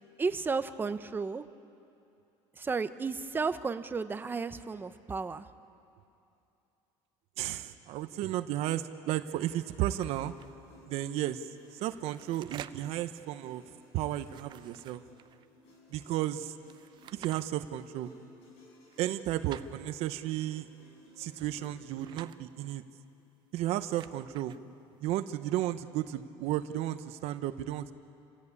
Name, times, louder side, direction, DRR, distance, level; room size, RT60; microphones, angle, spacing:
voice 1, 0.2-1.4 2.5-5.5, right 4 dB, 15° right, 11 dB, 0.8 m, -33 dB
voice 2, 7.4-10.3 10.9-13.6 13.9-15.0 15.9-16.5 17.1-18.1 19.0-20.7 21.2-22.8 23.5-24.6 25.0-27.9, right 13 dB, 60° right, 11 dB, 0.9 m, -33 dB
sound 1, 9.7-22.2, left 1 dB, 65° left, 6.9 m, -59 dB
sound 2, 10.0-10.5 11.6-13.0 14.2-15.5 16.6-17.4 18.9-19.7 21.2-22.4 23.5-24.6, right 11 dB, 40° right, 0.6 m, -50 dB
28.5 x 16.5 x 8.5 m, 2.7 s
cardioid pair, 135°, 12 cm